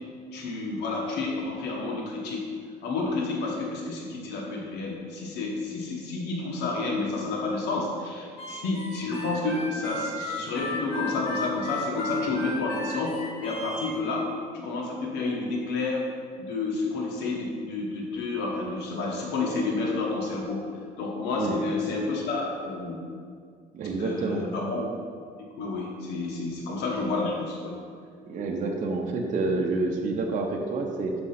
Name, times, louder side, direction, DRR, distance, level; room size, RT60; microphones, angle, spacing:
voice 1, 0.3-2.5 2.8-16.1 16.4-20.7 21.0-23.1 24.0-24.9 25.4-27.8, left 3 dB, 85° left, -1 dB, 1.0 m, -30 dB
Harmonica, 8.4-13.9, left 1 dB, 65° left, 1.6 m, -35 dB
voice 2, 23.7-24.5 28.3-31.2, right 3 dB, 50° right, 0 dB, 0.7 m, -28 dB
6.1 x 3.7 x 5.7 m, 2.1 s
cardioid pair, 110°, 17 cm